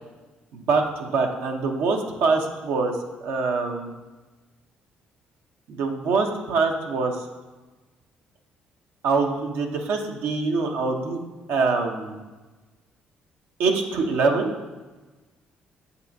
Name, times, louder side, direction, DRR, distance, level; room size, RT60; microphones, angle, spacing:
voice 1, 0.5-3.9 5.7-7.2 9.0-11.2 11.5-12.1 13.6-14.5, right 4 dB, 80° right, 2 dB, 0.7 m, -24 dB
7.6 x 5.4 x 2.7 m, 1.2 s
cardioid pair, 80°, 4 cm